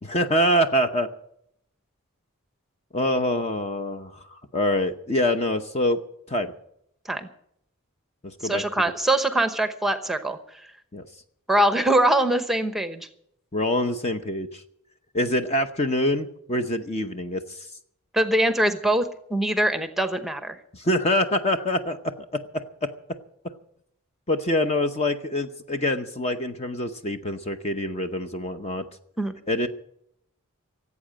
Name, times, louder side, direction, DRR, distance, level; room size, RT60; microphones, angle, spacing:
voice 1, 0.0-1.1 2.9-6.0 6.3-6.5 8.2-8.6 10.9-11.0 13.5-14.6 15.1-17.7 20.7-22.9 24.3-28.8 29.5-29.7, left 1 dB, 30° left, 8 dB, 0.8 m, -25 dB
voice 2, 8.5-10.6 11.5-13.1 18.1-20.6 29.2-29.3, right 1 dB, ahead, 9 dB, 0.9 m, -23 dB
16.5 x 8.4 x 8.7 m, 0.72 s
head